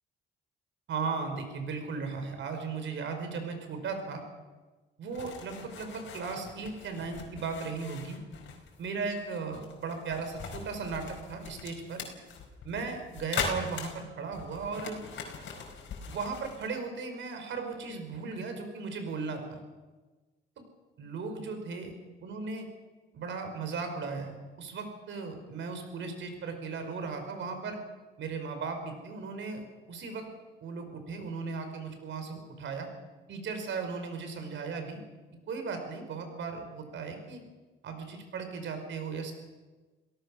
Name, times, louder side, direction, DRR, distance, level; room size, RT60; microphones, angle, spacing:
voice 1, 0.9-4.2 5.0-8.2 8.8-12.0 12.6-15.0 16.1-19.6 21.0-21.9 22.2-22.6 23.1-27.8 28.2-29.6 29.9-30.3 30.6-32.9 33.3-35.0 35.5-37.4 37.8-39.3, right 4 dB, 70° right, 6 dB, 4.9 m, -36 dB
sound 1, 5.1-16.7, left 5 dB, 65° left, 5.0 m, -41 dB
28.0 x 17.5 x 6.3 m, 1.3 s
cardioid pair, 90°, 20 cm